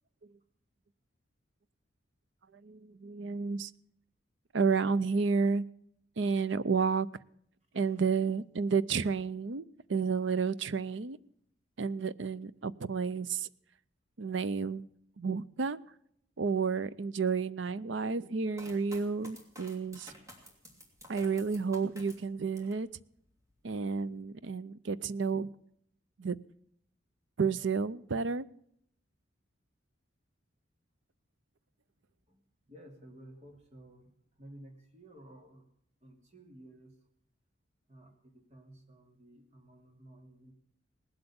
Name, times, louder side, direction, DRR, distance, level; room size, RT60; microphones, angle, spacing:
voice 1, 2.5-3.7 4.5-5.7 6.2-7.1 7.7-9.6 9.9-11.2 11.8-13.5 14.2-14.9 15.2-15.8 16.4-20.1 21.1-22.9 23.6-25.5 26.2-26.4 27.4-28.5, right 5 dB, 75° right, 0.6 m, -31 dB
sound 1, 18.5-22.8 23.3-23.9, left 1 dB, 15° right, 3.0 m, -52 dB
voice 2, 32.7-35.7 36.0-37.1 37.9-40.5, right 1 dB, 35° right, 2.9 m, -54 dB
19.0 x 7.9 x 7.1 m
head